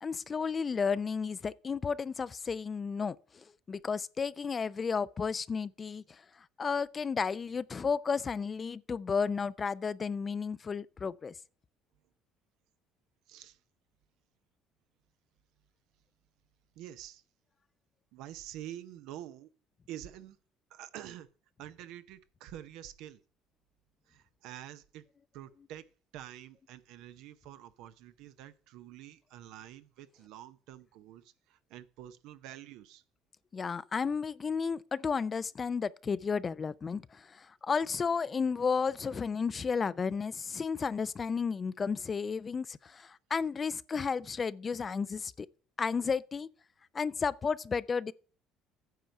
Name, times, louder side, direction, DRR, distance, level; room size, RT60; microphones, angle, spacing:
voice 1, 0.0-6.2 6.6-11.3 33.5-45.5 45.8-46.5 46.9-48.1, left 5 dB, 30° left, 0.4 m, -33 dB
voice 2, 13.3-13.6 16.8-17.2 18.1-19.5 19.9-20.4 20.7-21.3 21.6-23.2 24.1-25.0 25.3-25.9 26.1-33.0, right 12 dB, 75° right, 0.6 m, -47 dB
9.3 x 4.6 x 6.5 m
supercardioid pair, 90°, 0 cm